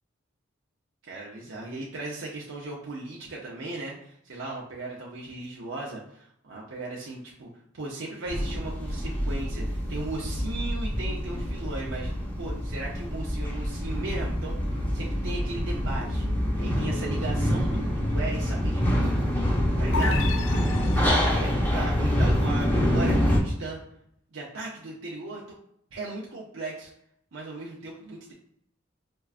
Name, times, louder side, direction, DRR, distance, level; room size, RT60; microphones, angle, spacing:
voice 1, 1.0-12.1 12.4-14.6 14.9-16.3 16.6-19.3 19.8-20.4 20.9-23.8 24.3-25.4 25.9-26.9 27.3-28.3, right 2 dB, 80° right, -4 dB, 0.6 m, -37 dB
sound 1, 8.3-23.4, equal, 10° left, 0.6 m, -26 dB
sound 2, 19.9-21.6, left 4 dB, 85° left, 0.5 m, -33 dB
4.4 x 2.3 x 2.4 m, 0.71 s
head